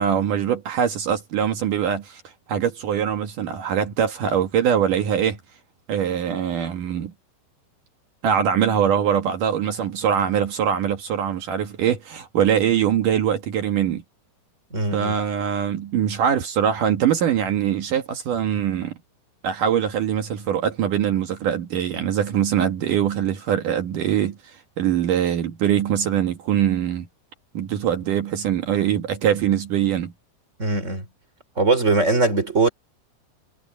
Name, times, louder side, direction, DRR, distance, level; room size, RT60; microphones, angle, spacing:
voice 1, 0.0-2.2 2.5-5.4 5.9-7.1 8.2-14.0 14.9-19.0 19.4-27.1 27.5-30.1, right 9 dB, 60° right, 2.4 m, -22 dB
voice 2, 14.7-15.2 30.6-31.0 31.6-32.7, right 3 dB, 15° right, 4.0 m, -20 dB
omnidirectional pair, 5.3 m